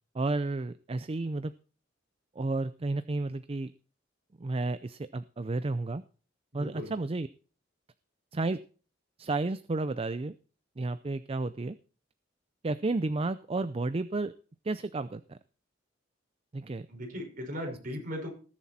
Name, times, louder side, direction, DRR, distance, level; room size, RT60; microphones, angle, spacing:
voice 1, 0.1-1.5 2.4-3.7 4.4-6.0 6.5-7.3 8.3-8.6 9.2-10.3 10.8-11.8 12.6-14.3 14.6-15.4 16.5-16.9 17.6-17.8, right 2 dB, 30° right, 14 dB, 0.5 m, -32 dB
voice 2, 6.5-6.9 16.9-18.3, equal, 45° right, 1 dB, 5.3 m, -37 dB
19.5 x 7.4 x 4.2 m, 0.39 s
head